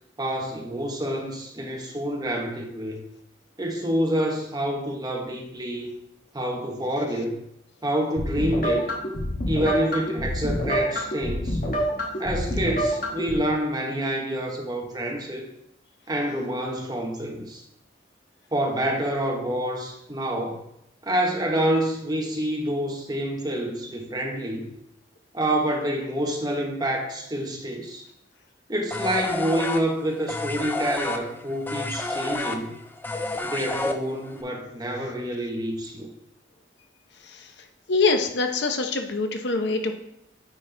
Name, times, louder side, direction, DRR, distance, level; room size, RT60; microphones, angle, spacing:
voice 1, 0.2-3.0 3.6-5.9 6.3-7.4 7.8-8.9 9.5-11.6 12.2-15.4 16.1-17.6 18.5-20.6 21.0-24.7 25.3-28.1 28.7-32.8 33.4-36.1, right 1 dB, 20° right, 0 dB, 1.0 m, -27 dB
sound 1, 8.2-13.4, equal, 50° left, 1.2 m, -27 dB
sound 2, 28.9-34.4, left 2 dB, 10° left, 0.4 m, -30 dB
voice 2, 37.9-39.9, left 3 dB, 70° left, 6 dB, 0.8 m, -24 dB
9.1 x 4.3 x 3.3 m, 0.78 s
head